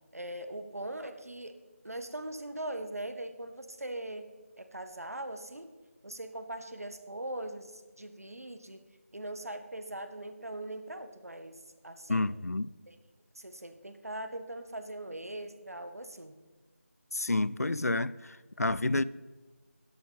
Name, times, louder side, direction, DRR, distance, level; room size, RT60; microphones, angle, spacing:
voice 1, 0.1-1.5 1.8-4.2 4.6-5.7 6.0-8.8 9.1-12.3 12.9-13.0 13.3-16.3, right 1 dB, 75° right, 1.5 m, -41 dB
voice 2, 12.1-12.7 17.1-19.0, left 2 dB, 85° left, 0.5 m, -29 dB
12.5 x 11.0 x 4.1 m
figure-of-eight pair, 165°, 8 cm